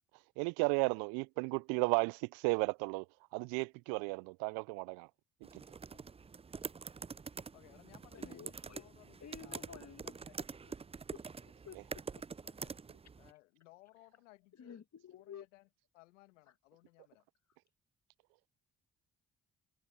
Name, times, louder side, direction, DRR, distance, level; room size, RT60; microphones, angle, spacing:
voice 1, 0.4-5.1 5.5-5.6, right 32 dB, 75° right, 0.5 m, -34 dB
sound 1, 5.4-13.3, right 5 dB, 15° right, 0.5 m, -46 dB
voice 2, 7.5-9.7 9.9-10.5 12.4-12.7 13.2-14.8 15.1-15.7 15.9-17.3, left 21 dB, 85° left, 1.8 m, -62 dB
voice 3, 8.1-8.9 9.2-10.1 11.1-12.0 14.5-15.5, left 8 dB, 45° left, 2.2 m, -52 dB
hypercardioid pair, 40°, 36 cm